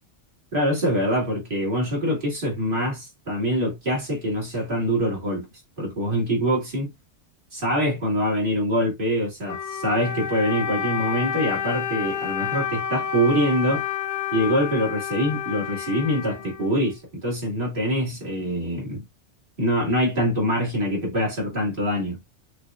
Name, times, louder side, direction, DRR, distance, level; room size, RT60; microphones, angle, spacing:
voice 1, 0.5-5.5 5.8-6.9 7.5-13.8 14.3-19.0 19.6-22.2, equal, 50° right, 2.5 m, -24 dB
Wind instrument woodwind instrument, 9.4-17.0, left 8 dB, 80° left, 1.3 m, -30 dB
6.4 x 2.5 x 2.4 m
omnidirectional pair, 1.2 m